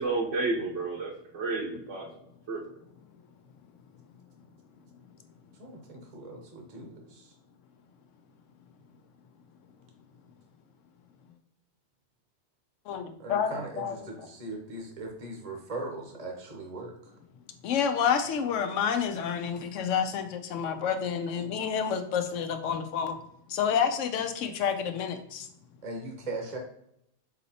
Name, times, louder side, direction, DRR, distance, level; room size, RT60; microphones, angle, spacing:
voice 1, 0.0-2.1 2.5-2.6, right 3 dB, 80° right, -3 dB, 1.1 m, -31 dB
voice 2, 5.6-7.3 13.2-16.9 25.8-26.6, right 2 dB, 40° right, 1 dB, 0.7 m, -39 dB
voice 3, 12.9-13.9 17.6-23.2 23.5-25.5, left 7 dB, 85° left, 8 dB, 0.9 m, -29 dB
4.2 x 3.9 x 2.8 m, 0.74 s
omnidirectional pair, 1.2 m